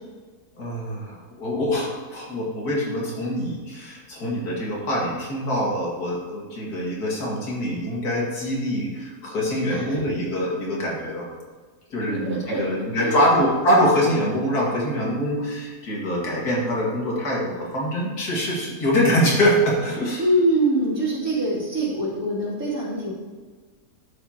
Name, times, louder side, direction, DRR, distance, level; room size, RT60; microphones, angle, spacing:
voice 1, 0.6-11.3 11.9-20.2, equal, 85° left, -3 dB, 2.5 m, -24 dB
voice 2, 9.7-10.0 12.1-12.6 12.9-13.2 20.2-23.1, right 1 dB, 70° right, -7 dB, 3.3 m, -24 dB
11.0 x 7.1 x 2.9 m, 1.4 s
omnidirectional pair, 1.6 m